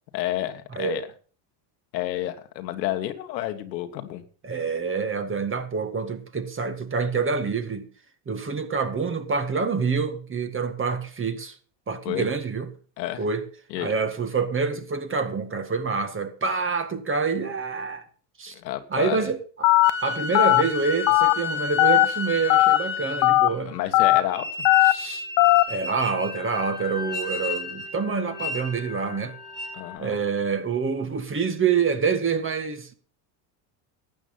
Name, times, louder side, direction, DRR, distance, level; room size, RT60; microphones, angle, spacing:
voice 1, 0.1-1.1 1.9-4.2 12.0-12.3 13.0-13.2 13.7-13.9 18.5-19.3 23.7-24.5 29.7-30.1, left 14 dB, 90° left, 1.6 m, -30 dB
voice 2, 0.7-1.0 4.4-7.9 8.3-11.6 11.9-12.7 13.2-13.5 13.8-18.0 18.4-18.6 18.9-19.7 20.0-23.8 24.9-25.3 25.7-29.4 30.0-32.9, right 5 dB, 25° right, 1.9 m, -27 dB
Telephone, 19.6-19.9 20.3-20.6 21.1-21.3 21.8-22.1 22.5-22.8 23.2-23.5 23.9-24.2 24.7-24.9 25.4-25.6, left 19 dB, 55° left, 0.7 m, -17 dB
sound 1, 19.8-23.6 24.3-30.0, left 4 dB, 10° right, 3.6 m, -33 dB
12.0 x 8.9 x 5.6 m
supercardioid pair, 100°, 49 cm